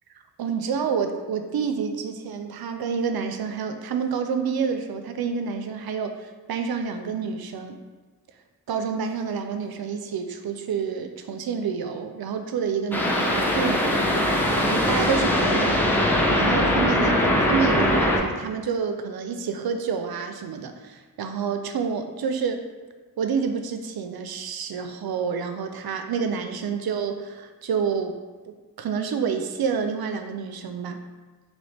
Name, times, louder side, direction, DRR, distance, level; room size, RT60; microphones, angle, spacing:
voice 1, 0.4-7.8 8.7-14.3 14.5-15.9 16.3-17.2 17.5-22.7 23.2-28.2 28.5-31.0, right 6 dB, 70° right, 7 dB, 0.5 m, -28 dB
sound 1, 12.9-18.2, left 1 dB, 5° left, 0.7 m, -21 dB
3.2 x 2.9 x 4.2 m, 1.3 s
cardioid pair, 60°, 39 cm